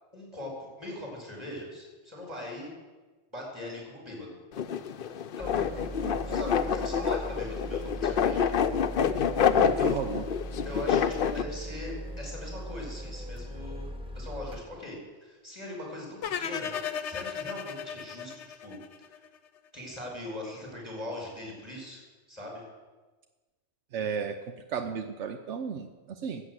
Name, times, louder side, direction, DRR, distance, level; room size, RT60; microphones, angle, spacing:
voice 1, 0.1-2.7 3.3-4.4 5.4-5.8 6.2-8.4 9.7-10.0 10.6-13.9 14.1-16.7 17.0-18.8 19.7-22.0 22.3-22.6, left 1 dB, 25° right, -2 dB, 5.5 m, -40 dB
sound 1, 4.5-11.4, left 7 dB, 55° left, 0.8 m, -27 dB
sound 2, 5.4-14.6, right 1 dB, 5° right, 1.2 m, -39 dB
voice 2, 6.0-6.4 9.5-10.2 23.9-24.3 24.7-26.4, right 6 dB, 85° right, 7 dB, 1.1 m, -34 dB
sound 3, 16.2-19.4, left 8 dB, 85° left, 1.1 m, -35 dB
13.5 x 8.2 x 7.9 m, 1.3 s
omnidirectional pair, 1.2 m